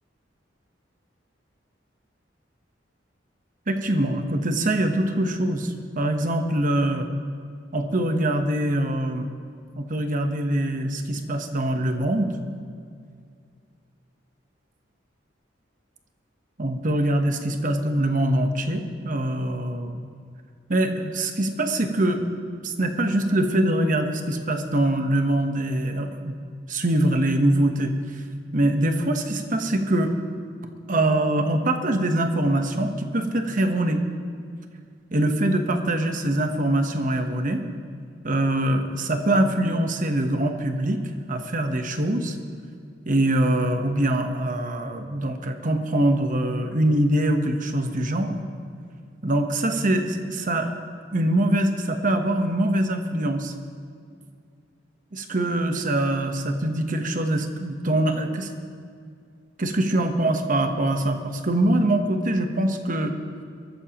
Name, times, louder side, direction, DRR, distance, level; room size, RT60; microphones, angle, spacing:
voice 1, 3.7-7.1 7.7-9.3 9.8-12.3 16.6-20.0 20.7-22.2 22.6-26.4 26.7-27.9 28.5-30.1 30.9-34.0 35.1-37.6 38.2-41.0 41.3-42.4 43.1-48.4 49.2-50.7 51.1-53.5 55.1-58.5 59.6-63.1, right 1 dB, 45° right, 6 dB, 1.1 m, -23 dB
22.0 x 13.5 x 3.0 m, 2.2 s
head